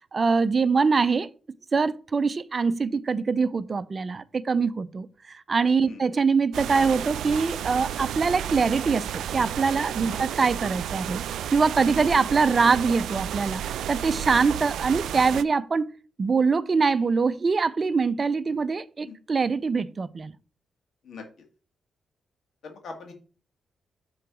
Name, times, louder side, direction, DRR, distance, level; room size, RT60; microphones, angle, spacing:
voice 1, 0.1-1.3 1.7-11.2 11.5-15.9 16.2-20.3, right 4 dB, 40° right, 0.6 m, -23 dB
sound 1, 6.5-15.4, right 10 dB, 80° right, 0.3 m, -32 dB
voice 2, 22.6-23.1, left 4 dB, 70° left, 2.2 m, -41 dB
6.7 x 3.9 x 6.1 m
cardioid pair, 65°, 0 cm